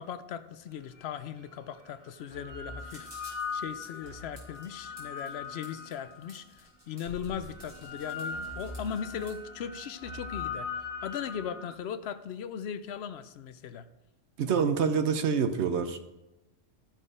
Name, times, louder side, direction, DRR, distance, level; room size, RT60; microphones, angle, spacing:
voice 1, 0.0-13.9, left 8 dB, 65° left, 12 dB, 0.8 m, -38 dB
sound 1, 1.0-1.1 2.0-6.3 7.1-11.7, left 4 dB, 20° left, 1.5 m, -40 dB
sound 2, 2.8-9.3, right 1 dB, 35° right, 3.0 m, -54 dB
voice 2, 14.4-16.0, right 6 dB, 65° right, 9 dB, 1.0 m, -26 dB
12.5 x 4.5 x 4.9 m, 0.97 s
omnidirectional pair, 1.3 m